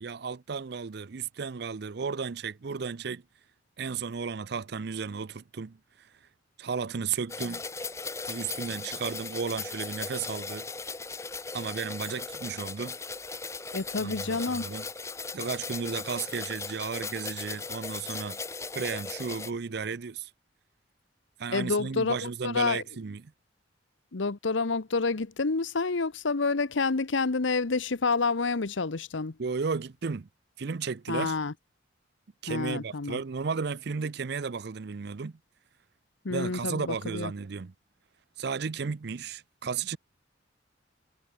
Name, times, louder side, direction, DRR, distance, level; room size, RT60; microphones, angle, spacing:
voice 1, 0.0-3.2 3.8-6.1 6.6-7.6 8.3-10.7 11.5-13.0 14.0-14.9 15.3-18.4 18.7-20.3 21.4-23.3 29.4-30.3 30.6-31.4 32.4-35.4 36.3-37.7 38.4-40.0, right 5 dB, 55° right, 0.5 m, -34 dB
sound 1, 7.3-19.5, left 4 dB, 15° left, 0.8 m, -38 dB
voice 2, 13.7-14.6 21.5-22.8 24.1-29.3 31.1-31.5 32.5-33.2 36.2-37.3, left 4 dB, 75° left, 0.9 m, -28 dB
head